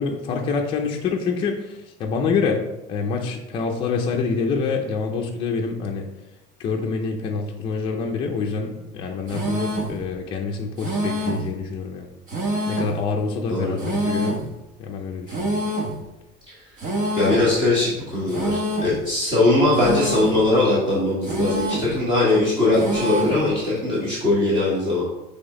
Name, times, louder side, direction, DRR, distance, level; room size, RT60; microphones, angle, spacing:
voice 1, 0.0-2.6 2.9-6.1 6.6-12.1 12.7-14.4 14.8-15.5, left 5 dB, 25° left, 0 dB, 0.5 m, -26 dB
sound 1, 9.3-10.0 10.8-11.5 12.3-13.0 13.8-14.5 15.3-16.0 16.8-17.5 18.3-19.0 19.7-20.4 21.2-21.9 22.7-23.4, right 1 dB, 40° right, 1.2 m, -26 dB
voice 2, 17.1-25.0, left 2 dB, 25° right, -8 dB, 1.7 m, -20 dB
5.9 x 3.5 x 5.0 m, 0.93 s
cardioid pair, 180°, 19 cm